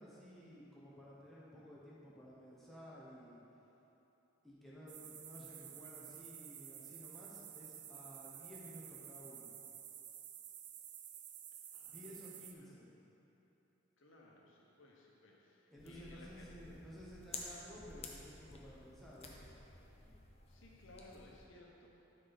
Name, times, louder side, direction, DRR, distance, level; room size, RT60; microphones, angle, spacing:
voice 1, 0.0-3.4 4.4-9.5 11.9-12.9 15.7-19.5, equal, ahead, -8 dB, 1.0 m, -54 dB
sound 1, 4.9-12.5, right 10 dB, 40° right, 0.4 m, -52 dB
voice 2, 11.7-12.7 14.0-16.5 16.7-17.0 20.5-22.0, left 2 dB, 75° left, -3 dB, 1.1 m, -60 dB
sound 2, 15.8-21.5, left 3 dB, 30° left, 0.6 m, -52 dB
9.8 x 4.4 x 4.0 m, 3.0 s
head